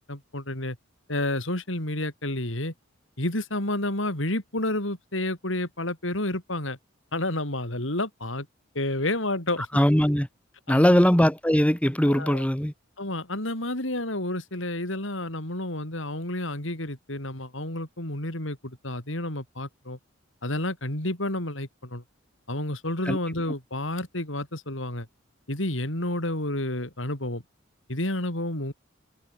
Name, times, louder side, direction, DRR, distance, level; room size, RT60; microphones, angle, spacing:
voice 1, 0.1-0.8 1.1-2.7 3.2-6.8 7.1-8.5 8.7-9.7 10.7-11.1 12.1-12.5 13.0-20.0 20.4-22.0 22.5-25.1 25.5-27.4 27.9-28.7, left 1 dB, 75° left, 6.0 m, -30 dB
voice 2, 9.7-10.3 10.7-12.7 23.1-23.2, equal, 5° left, 2.7 m, -20 dB
head